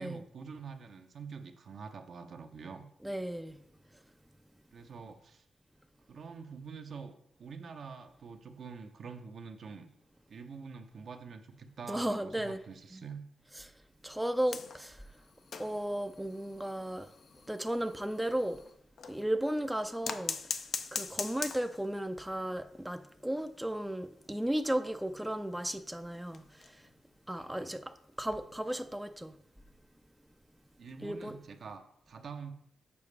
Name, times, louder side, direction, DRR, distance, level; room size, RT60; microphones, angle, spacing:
voice 1, 0.0-2.8 4.7-5.4 6.1-9.9 10.3-13.2 27.4-27.8 30.8-32.5, right 5 dB, 65° right, 6 dB, 0.6 m, -46 dB
voice 2, 3.0-3.6 11.9-12.6 12.9-13.0 13.6-13.7 14.0-15.0 15.6-17.1 17.5-18.6 19.1-20.4 20.9-26.8 27.3-27.8 28.2-29.3 31.0-31.3, right 1 dB, 5° right, 8 dB, 0.4 m, -34 dB
sound 1, 14.5-19.3 20.0-21.9 22.3-22.4 22.7-22.8 23.1-23.2 23.8-26.9 27.3-27.6 28.8-28.9, left 5 dB, 65° left, 0.4 m, -42 dB
6.9 x 4.8 x 3.2 m, 0.71 s
cardioid pair, 65°, 0 cm